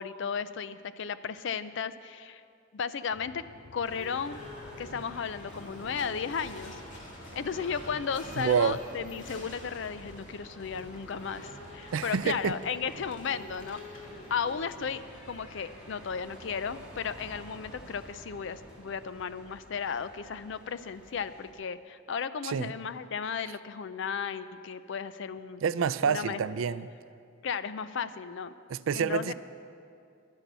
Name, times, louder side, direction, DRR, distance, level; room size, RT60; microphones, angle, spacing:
voice 1, 0.0-2.4 2.7-3.4 3.7-4.4 4.8-6.8 7.3-13.8 14.3-15.0 15.3-25.6 26.0-26.4 27.4-28.5 28.9-29.3, left 6 dB, 65° left, 13 dB, 0.5 m, -34 dB
sound 1, 3.1-19.1, left 2 dB, 85° left, 0.8 m, -58 dB
Livestock farm animals working animals / Bell, 3.7-19.6, left 1 dB, 40° left, 2.1 m, -48 dB
sound 2, 3.8-21.5, right 1 dB, 5° right, 2.0 m, -52 dB
voice 2, 8.4-8.8 11.9-12.5 22.4-22.7 25.6-26.9 28.7-29.3, right 6 dB, 80° right, 15 dB, 0.4 m, -28 dB
11.5 x 10.0 x 6.8 m, 2.4 s
head